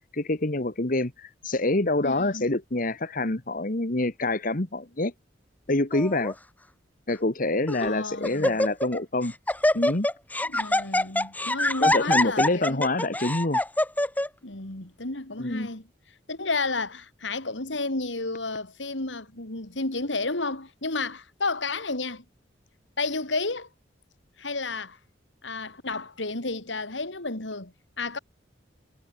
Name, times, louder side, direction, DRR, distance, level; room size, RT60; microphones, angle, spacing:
voice 1, 0.1-5.1 5.7-6.3 7.1-9.3 9.7-10.1 11.8-13.6 15.4-15.7, left 2 dB, 50° left, 1.8 m, -26 dB
voice 2, 2.0-2.5 7.8-8.6 10.4-12.8 14.4-15.9 16.3-22.2 23.0-23.7 24.4-25.0 25.4-28.2, left 3 dB, 85° left, 3.6 m, -32 dB
Laughter, 5.9-6.3 7.1-7.2 7.7-7.9 8.2-9.0 9.2-14.3, left 1 dB, 10° left, 1.5 m, -24 dB
head